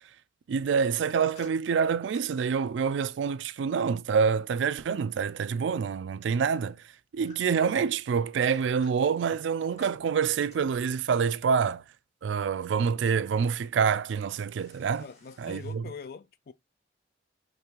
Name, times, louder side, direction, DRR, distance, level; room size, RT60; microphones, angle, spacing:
voice 1, 0.5-6.8 7.1-11.8 12.2-15.1 15.4-15.8, right 6 dB, 80° right, 0.3 m, -27 dB
sound 1, 0.9-3.2 6.5-7.7 8.3-11.2 14.6-15.7, left 2 dB, 35° left, 2.3 m, -58 dB
voice 2, 15.0-16.5, left 5 dB, 55° left, 0.4 m, -43 dB
5.1 x 3.2 x 2.9 m
head